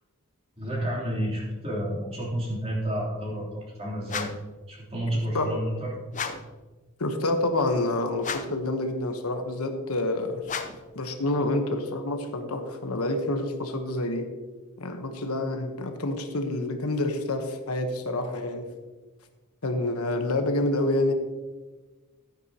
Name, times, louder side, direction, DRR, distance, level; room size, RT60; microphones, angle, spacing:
voice 1, 0.6-4.3 4.7-6.0, equal, 30° right, -4 dB, 3.3 m, -30 dB
sound 1, 4.0-4.5 6.1-6.6 8.2-8.7 10.4-10.9, left 5 dB, 35° left, 0.6 m, -34 dB
voice 2, 5.1-5.5 7.0-10.5 10.9-14.3 14.8-18.7 19.6-21.1, left 2 dB, 75° left, 6 dB, 1.1 m, -28 dB
13.5 x 9.5 x 2.9 m, 1.3 s
head